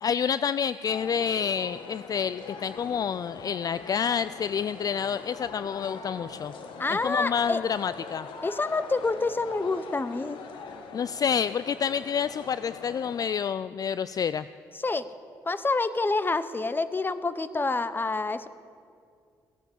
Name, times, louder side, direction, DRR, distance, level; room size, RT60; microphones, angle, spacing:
voice 1, 0.0-6.5 6.9-8.3 10.9-14.5, left 7 dB, 50° left, 15 dB, 0.3 m, -28 dB
sound 1, 0.9-13.3, left 5 dB, 80° left, 1.3 m, -42 dB
voice 2, 6.8-7.6 8.4-10.4 14.7-15.1 15.4-18.5, left 3 dB, 25° left, 14 dB, 0.8 m, -27 dB
16.0 x 9.1 x 7.2 m, 2.3 s
supercardioid pair, 60°, 8 cm